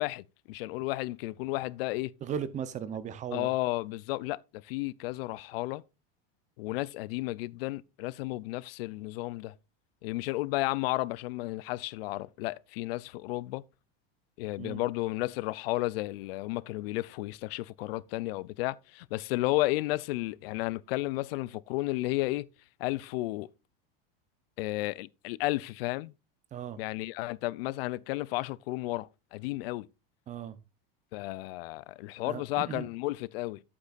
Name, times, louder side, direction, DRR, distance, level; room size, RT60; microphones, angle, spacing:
voice 1, 0.0-2.1 3.3-5.8 6.6-9.5 10.0-13.6 14.4-22.5 22.8-23.5 24.6-26.1 26.8-29.9 31.1-33.6, left 19 dB, 75° left, 0.5 m, -33 dB
voice 2, 2.2-3.5 14.6-14.8 26.5-26.8 30.3-30.6 32.2-32.9, right 8 dB, 25° right, 0.7 m, -37 dB
10.5 x 8.4 x 2.4 m
supercardioid pair, 150°, 29 cm